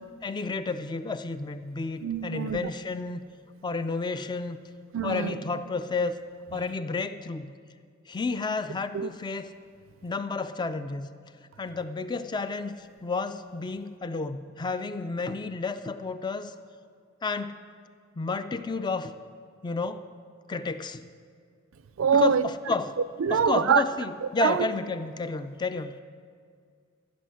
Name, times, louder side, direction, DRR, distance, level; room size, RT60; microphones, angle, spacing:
voice 1, 0.2-3.2 3.6-4.6 5.0-6.2 6.5-7.5 8.1-9.5 10.0-11.1 11.6-16.5 17.2-17.6 18.2-19.1 19.6-20.1 20.5-21.1 22.1-23.0 23.3-26.0, left 3 dB, 20° left, 11 dB, 0.4 m, -31 dB
voice 2, 2.0-2.7 4.9-5.3 8.9-9.1 22.0-22.5 23.2-23.8 24.4-24.7, right 7 dB, 65° right, 15 dB, 0.4 m, -24 dB
13.5 x 6.4 x 6.3 m, 2.2 s
head